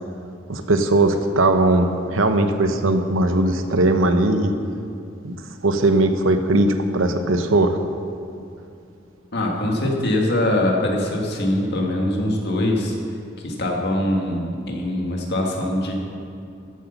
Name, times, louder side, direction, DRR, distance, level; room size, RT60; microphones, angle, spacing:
voice 1, 0.5-4.5 5.2-5.3 5.6-7.8, right 2 dB, 75° right, 8 dB, 0.9 m, -19 dB
voice 2, 9.3-12.9 13.4-15.9, left 1 dB, 55° left, 0 dB, 1.9 m, -22 dB
14.0 x 8.1 x 5.8 m, 2.5 s
head